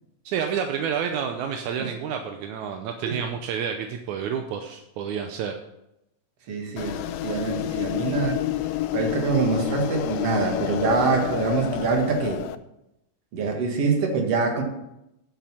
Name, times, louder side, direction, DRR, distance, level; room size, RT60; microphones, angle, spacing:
voice 1, 0.3-5.5, right 7 dB, 80° right, 5 dB, 2.1 m, -29 dB
voice 2, 6.5-8.4 8.9-12.4 13.3-14.6, right 4 dB, 55° right, 2 dB, 2.7 m, -25 dB
sound 1, 6.8-12.6, left 14 dB, 80° left, 1.5 m, -29 dB
9.5 x 7.6 x 5.7 m, 0.85 s
omnidirectional pair, 3.4 m